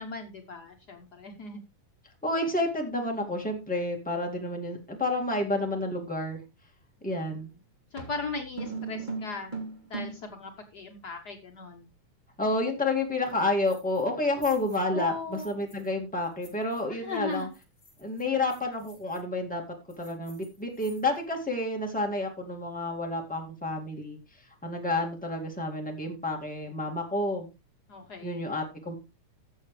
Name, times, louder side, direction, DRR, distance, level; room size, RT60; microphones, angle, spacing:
voice 1, 0.0-1.6 7.9-9.5 9.8-11.9 14.9-15.6 16.9-17.5 27.9-28.4, left 4 dB, 85° left, 3 dB, 0.8 m, -38 dB
voice 2, 2.2-6.4 7.0-7.5 12.4-17.5 18.0-19.6 20.0-24.2 24.6-27.5 28.2-29.0, left 2 dB, 5° left, 1 dB, 1.5 m, -30 dB
sound 1, 7.1-7.3 8.0-10.4, right 4 dB, 15° right, 2.7 m, -37 dB
sound 2, 13.2-14.1 14.4-15.9 16.2-19.2 19.9-21.3, left 2 dB, 25° left, 7.0 m, -56 dB
15.0 x 7.1 x 3.3 m, 0.27 s
omnidirectional pair, 3.5 m